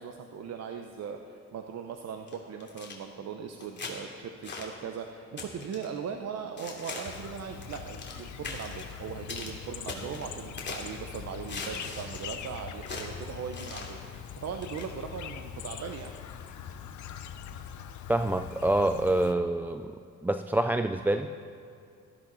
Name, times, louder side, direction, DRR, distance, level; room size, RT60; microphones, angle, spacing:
voice 1, 0.0-16.1, right 6 dB, 60° right, 5 dB, 0.8 m, -39 dB
sound 1, 2.3-2.9 3.6-3.9 4.4-4.7 5.4-5.9 6.6-7.3 7.6-8.2 8.4-8.9 9.3-9.5 9.9-11.0 11.5-12.3 12.8-13.1 13.5-14.0 14.6-14.9, left 4 dB, 35° left, 2.7 m, -40 dB
Chirp tweet, 7.0-19.3, left 8 dB, 75° left, 0.9 m, -42 dB
voice 2, 18.1-19.9 20.2-21.5, right 1 dB, 5° right, 9 dB, 0.3 m, -26 dB
17.5 x 13.5 x 4.1 m, 2.5 s
cardioid pair, 90°, 30 cm